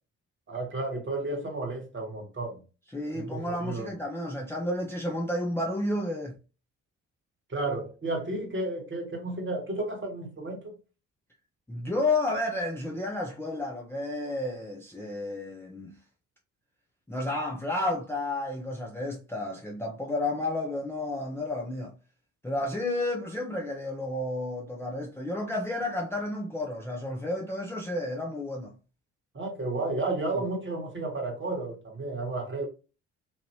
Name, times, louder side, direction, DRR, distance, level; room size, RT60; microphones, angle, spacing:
voice 1, 0.5-2.6 3.1-3.9 7.5-10.7 29.3-32.7, right 2 dB, 30° right, 1.3 m, -32 dB
voice 2, 2.9-6.3 11.7-16.0 17.1-21.9 22.4-28.7 30.3-30.4, left 2 dB, 5° left, 0.7 m, -31 dB
3.1 x 2.4 x 3.0 m
figure-of-eight pair, 45°, 37 cm